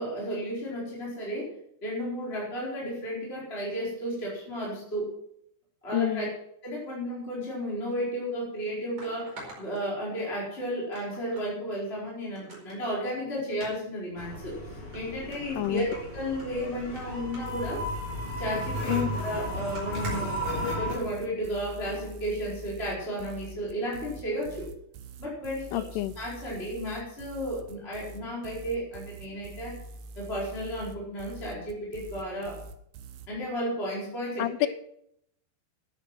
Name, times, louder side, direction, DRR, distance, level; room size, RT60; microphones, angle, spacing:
voice 1, 0.0-1.5 1.8-5.1 5.8-6.3 6.6-14.5 14.9-17.8 18.4-20.4 20.8-24.7 25.2-25.8 26.2-29.8 30.1-32.6 33.3-34.5, equal, 15° left, -5 dB, 4.3 m, -33 dB
voice 2, 5.9-6.3 15.6-15.9 18.9-19.2 25.7-26.1 34.4-34.7, left 15 dB, 85° left, 15 dB, 3.1 m, -28 dB
sound 1, 7.9-8.0 9.0-10.4 10.9-11.5 11.9-12.0 12.3-12.8 13.5-13.7 14.5-14.6 14.9-15.0 15.3-16.5 16.8-17.0 17.3-17.6 18.4-21.1 21.8-22.1 22.6-22.7, right 1 dB, 25° right, 5.1 m, -46 dB
sound 2, 14.2-20.9, equal, 30° left, 3.9 m, -34 dB
sound 3, 17.4-33.3, right 3 dB, 90° right, 1.9 m, -45 dB
13.0 x 10.5 x 5.9 m, 0.71 s
omnidirectional pair, 5.6 m